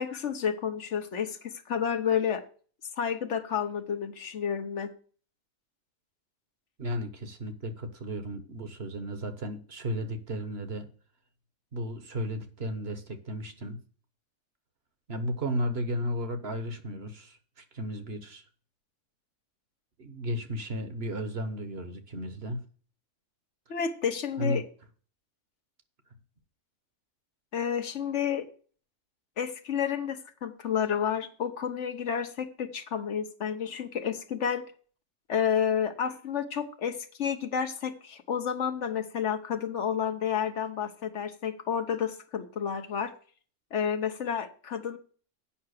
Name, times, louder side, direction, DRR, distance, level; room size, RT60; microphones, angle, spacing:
voice 1, 0.0-2.4 3.0-4.9 23.7-24.6 27.5-28.5 29.4-34.6 35.3-43.1 43.7-45.0, left 8 dB, 65° left, 1.3 m, -30 dB
voice 2, 6.8-10.9 11.7-13.8 15.1-18.4 20.0-22.6 24.4-24.6, equal, 55° right, 1.4 m, -34 dB
8.6 x 5.8 x 6.5 m
omnidirectional pair, 1.3 m